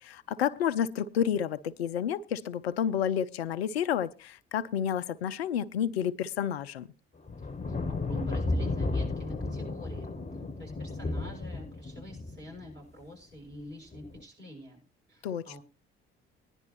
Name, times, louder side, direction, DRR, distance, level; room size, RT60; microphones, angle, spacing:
voice 1, 0.0-6.9 15.2-15.6, left 9 dB, 80° left, 14 dB, 0.6 m, -30 dB
sound 1, 7.3-12.7 13.9-14.2, left 3 dB, 20° left, 1.1 m, -33 dB
voice 2, 7.7-10.1 10.6-14.8 15.1-15.6, equal, 35° right, -2 dB, 6.4 m, -46 dB
19.0 x 10.5 x 3.0 m, 0.29 s
figure-of-eight pair, 45°, 31 cm